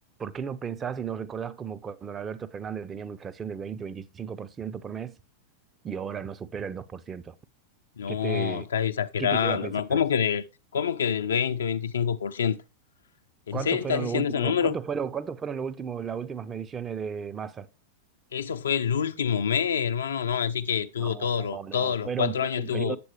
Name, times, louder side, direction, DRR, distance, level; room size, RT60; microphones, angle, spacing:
voice 1, 0.2-5.2 5.8-7.4 8.1-8.7 9.2-10.0 13.5-17.7 21.0-23.0, right 7 dB, 20° right, 0.6 m, -34 dB
voice 2, 8.0-10.4 10.7-12.6 13.5-14.8 18.3-23.0, left 7 dB, 65° left, 0.6 m, -26 dB
8.5 x 7.8 x 3.3 m
figure-of-eight pair, 90°, 0 cm